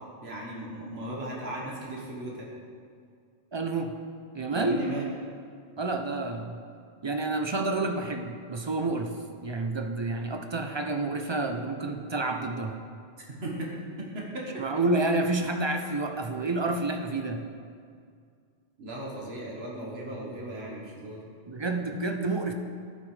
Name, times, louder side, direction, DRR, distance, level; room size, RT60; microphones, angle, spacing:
voice 1, 0.2-2.5 4.5-5.1 13.4-13.7 14.0-14.4 18.8-21.2, right 2 dB, 75° right, -4 dB, 1.7 m, -36 dB
voice 2, 3.5-3.9 4.3-4.8 5.8-6.6 7.0-12.8 14.6-17.5 21.5-22.5, right 2 dB, 40° right, 4 dB, 0.4 m, -29 dB
13.0 x 6.1 x 3.3 m, 2.2 s
omnidirectional pair, 1.1 m